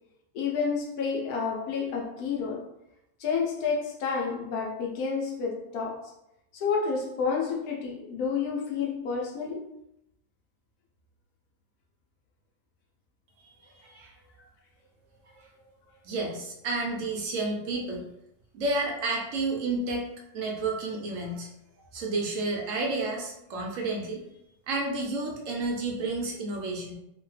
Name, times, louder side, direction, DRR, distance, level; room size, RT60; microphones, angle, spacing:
voice 1, 0.3-2.6 3.2-6.0 6.5-9.6, left 5 dB, 85° left, -1 dB, 1.1 m, -30 dB
voice 2, 13.6-14.1 15.2-15.5 16.0-18.0 18.5-20.0 20.3-21.5 21.9-24.2 24.7-26.9, right 2 dB, 65° right, 0 dB, 0.9 m, -31 dB
3.0 x 2.1 x 3.2 m, 0.81 s
omnidirectional pair, 1.6 m